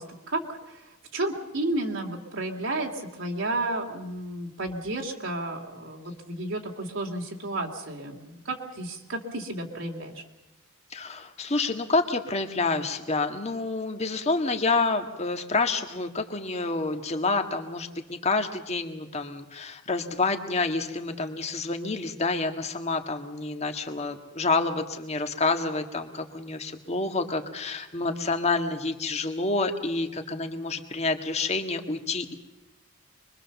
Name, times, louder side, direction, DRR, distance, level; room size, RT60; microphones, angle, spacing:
voice 1, 0.0-10.2, right 2 dB, 65° right, 0 dB, 2.7 m, -32 dB
voice 2, 10.9-32.3, left 3 dB, 30° left, 6 dB, 1.8 m, -28 dB
25.0 x 22.5 x 7.1 m, 1.0 s
head